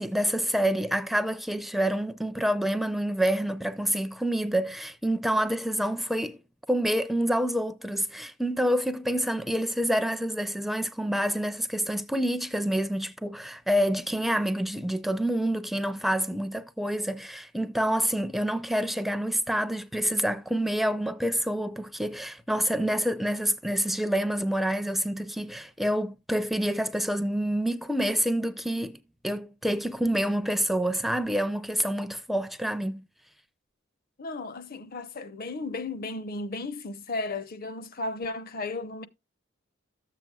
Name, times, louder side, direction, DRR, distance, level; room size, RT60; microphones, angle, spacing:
voice 1, 0.0-6.4 6.7-29.0 29.2-33.1, equal, ahead, 0.5 m, -27 dB
voice 2, 34.2-39.1, left 3 dB, 50° left, 0.8 m, -34 dB
13.0 x 7.5 x 2.3 m
head